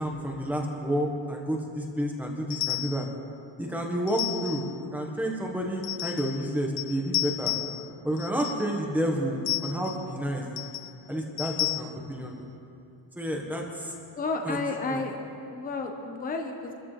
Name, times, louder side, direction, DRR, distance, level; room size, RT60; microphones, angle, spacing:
voice 1, 0.0-3.1 3.6-7.5 8.0-10.4 11.1-12.5 13.2-13.9 14.4-14.6 14.9-15.0, equal, 5° right, 0 dB, 1.4 m, -30 dB
sound 1, 2.5-3.1 4.1-4.7 5.8-6.5 6.8-7.9 8.2-8.7 9.5-10.0 10.6-10.9 11.4-11.8, left 19 dB, 65° left, 0.6 m, -32 dB
voice 2, 14.1-15.2 15.5-16.7, left 3 dB, 20° left, 3 dB, 1.1 m, -31 dB
25.0 x 14.0 x 3.3 m, 2.6 s
cardioid pair, 170°, 42 cm